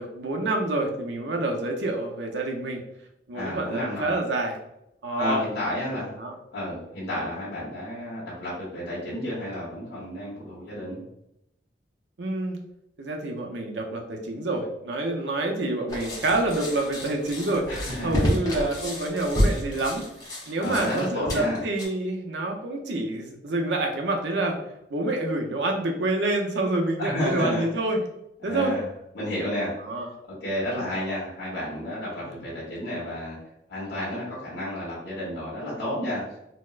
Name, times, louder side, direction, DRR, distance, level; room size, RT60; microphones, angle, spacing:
voice 1, 0.0-2.8 3.3-4.6 5.0-5.4 6.2-6.3 12.2-12.6 13.0-17.7 18.0-20.0 20.5-24.6 24.9-28.0 28.4-28.8 29.8-30.1 30.7-30.9 32.2-32.3, right 2 dB, 75° right, 2 dB, 0.6 m, -27 dB
voice 2, 3.3-4.1 5.2-6.1 6.5-11.0 17.7-18.2 20.6-21.6 27.0-27.7 28.4-28.8 29.1-29.7 30.2-33.4 33.7-36.4, left 1 dB, 70° left, -7 dB, 1.1 m, -31 dB
sound 1, 15.9-21.8, equal, 20° left, 0.8 m, -29 dB
4.1 x 2.0 x 2.4 m, 0.83 s
head